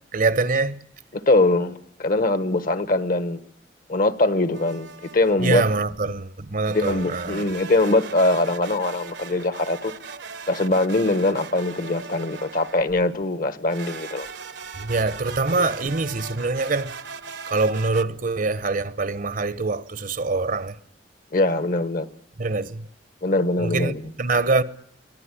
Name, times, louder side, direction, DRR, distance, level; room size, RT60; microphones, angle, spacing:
voice 1, 0.1-0.8 5.4-7.5 14.8-16.9 17.5-20.7 22.4-22.9 23.6-24.6, right 3 dB, 50° right, 0.9 m, -24 dB
voice 2, 1.3-3.4 3.9-4.9 5.1-5.6 6.7-9.9 10.5-14.3 15.5-15.7 21.3-22.1 23.2-24.1, left 2 dB, 50° left, 1.3 m, -22 dB
sound 1, 4.5-5.5 6.6-13.0 13.7-18.0, right 5 dB, 70° right, 1.1 m, -39 dB
23.0 x 19.0 x 10.0 m
head